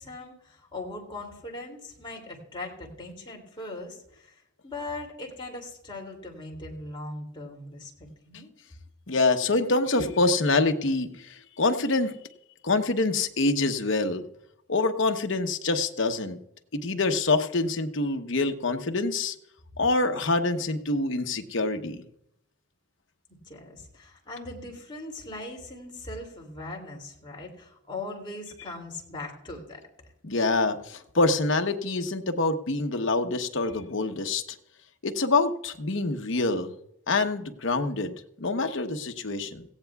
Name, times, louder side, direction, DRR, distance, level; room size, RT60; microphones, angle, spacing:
voice 1, 0.0-4.3 4.6-8.5 23.5-29.8, left 2 dB, 25° left, 0 dB, 2.7 m, -40 dB
voice 2, 9.1-12.2 12.6-14.2 14.7-16.4 16.7-19.3 19.8-22.1 30.2-34.6 35.0-36.8 37.1-39.6, left 3 dB, 60° left, 6 dB, 0.9 m, -26 dB
17.0 x 15.5 x 2.3 m, 0.79 s
head